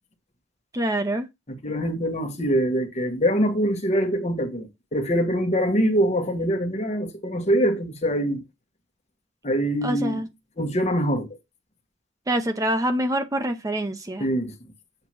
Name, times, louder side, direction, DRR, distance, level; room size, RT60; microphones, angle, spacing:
voice 1, 0.7-1.3 9.8-10.3 12.3-14.3, right 1 dB, 20° right, 0.6 m, -25 dB
voice 2, 1.5-8.4 9.4-10.2 10.6-11.4 14.2-14.5, equal, 35° left, 1.4 m, -24 dB
8.0 x 2.9 x 6.1 m
head